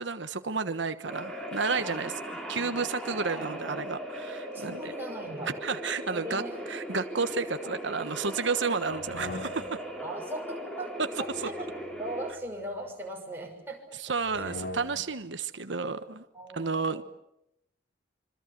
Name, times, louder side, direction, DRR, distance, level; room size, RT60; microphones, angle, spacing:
voice 1, 0.0-4.9 5.6-6.4 6.7-9.8 14.0-16.3 16.5-17.0, right 4 dB, 80° right, 9 dB, 1.3 m, -31 dB
sound 1, 1.1-12.3, right 1 dB, 5° left, 4.6 m, -38 dB
voice 2, 1.8-2.8 3.1-3.8 4.5-5.5 6.1-6.6 10.0-11.7 11.9-14.0 14.3-14.6 16.3-17.0, right 1 dB, 10° right, 0 dB, 6.1 m, -40 dB
sound 2, 8.9-10.0 11.3-12.9 14.2-15.2, left 2 dB, 65° left, 4.0 m, -43 dB
26.0 x 26.0 x 7.6 m, 0.81 s
head